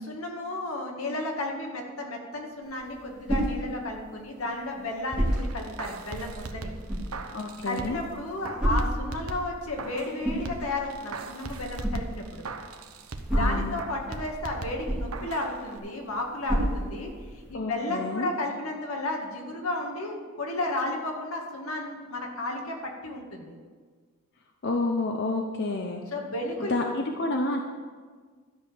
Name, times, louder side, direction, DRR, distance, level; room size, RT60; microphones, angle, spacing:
voice 1, 0.0-6.7 7.6-12.5 13.3-23.6 26.1-26.8, left 2 dB, 85° left, 1 dB, 2.0 m, -33 dB
sound 1, 2.6-17.5, equal, 5° right, 2.3 m, -33 dB
sound 2, 5.1-8.1 8.4-10.2 10.5-13.4 13.8-15.5 15.8-15.9, right 3 dB, 90° right, 0.9 m, -39 dB
voice 2, 7.3-8.0 13.3-13.7 17.5-18.3 24.6-26.0 26.6-27.6, left 2 dB, 55° left, 3 dB, 0.8 m, -29 dB
13.0 x 5.4 x 7.8 m, 1.5 s
head